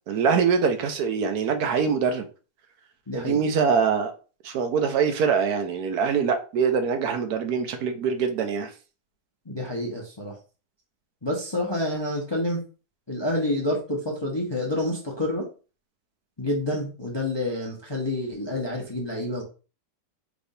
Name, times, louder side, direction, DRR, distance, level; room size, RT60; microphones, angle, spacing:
voice 1, 0.1-2.3 3.1-4.1 4.4-8.7, right 6 dB, 70° right, 1.1 m, -24 dB
voice 2, 3.1-3.4 9.5-10.3 11.2-12.6 13.1-15.5 16.4-19.4, left 1 dB, 25° left, 0.6 m, -28 dB
5.1 x 3.4 x 2.7 m
omnidirectional pair, 1.8 m